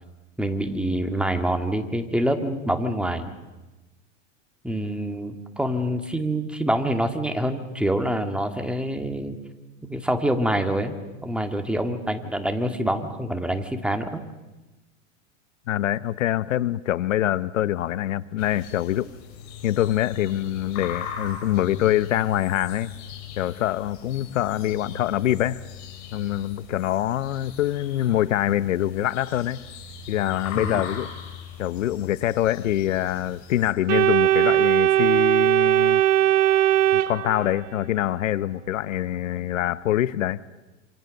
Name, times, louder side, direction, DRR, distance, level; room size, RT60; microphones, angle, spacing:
voice 1, 0.4-3.3 4.6-9.3 9.8-11.0 11.2-14.2 30.5-30.8, right 1 dB, 5° right, 5 dB, 2.3 m, -26 dB
voice 2, 15.7-19.1 19.6-22.9 23.4-25.6 26.1-29.6 30.1-31.1 31.6-36.0 36.9-40.4, left 13 dB, 85° left, 17 dB, 1.0 m, -25 dB
sound 1, 18.4-33.7, left 7 dB, 50° left, 7.2 m, -39 dB
Organ, 33.9-37.8, right 13 dB, 75° right, 0.9 m, -19 dB
27.5 x 27.0 x 6.6 m, 1.1 s
hypercardioid pair, 120°, 37 cm